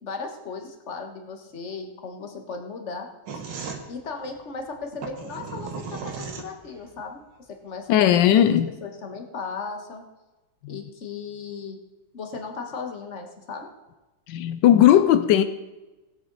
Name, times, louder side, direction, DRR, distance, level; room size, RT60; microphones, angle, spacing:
voice 1, 0.0-3.1 3.9-7.2 7.6-8.4 8.8-10.0 10.7-11.8 12.1-13.7, left 4 dB, 40° left, 1.6 m, -36 dB
sound 1, 3.3-6.9, right 5 dB, 90° right, 2.0 m, -36 dB
voice 2, 7.9-8.7 10.6-10.8 14.3-15.4, left 11 dB, 85° left, 1.3 m, -17 dB
19.0 x 8.0 x 4.0 m
omnidirectional pair, 1.9 m